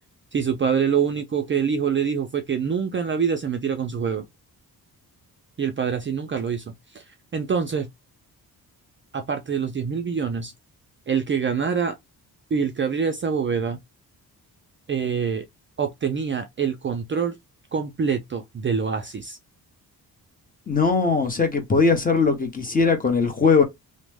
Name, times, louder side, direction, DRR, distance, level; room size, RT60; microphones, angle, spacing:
voice 1, 0.3-4.3 5.6-7.0 7.3-7.9 9.1-10.5 11.1-12.0 12.5-13.8 14.9-15.5 15.8-17.4 17.7-19.4, right 6 dB, 30° right, 0.5 m, -25 dB
voice 2, 20.7-23.6, left 4 dB, 20° left, 1.0 m, -20 dB
3.0 x 2.1 x 3.4 m
cardioid pair, 115°, 38 cm